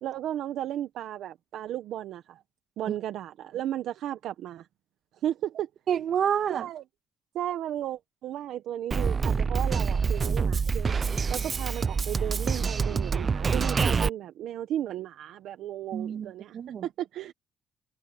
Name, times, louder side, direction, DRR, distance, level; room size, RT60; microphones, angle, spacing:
voice 1, 0.0-2.4 2.8-4.7 5.2-5.7 6.5-6.8 7.3-10.9 11.3-17.3, right 12 dB, 80° right, 1.0 m, -34 dB
voice 2, 5.9-6.7 15.9-16.9, right 8 dB, 65° right, 2.3 m, -28 dB
Drum kit, 8.9-14.1, right 5 dB, 40° right, 0.5 m, -26 dB
cardioid pair, 90°, 0 cm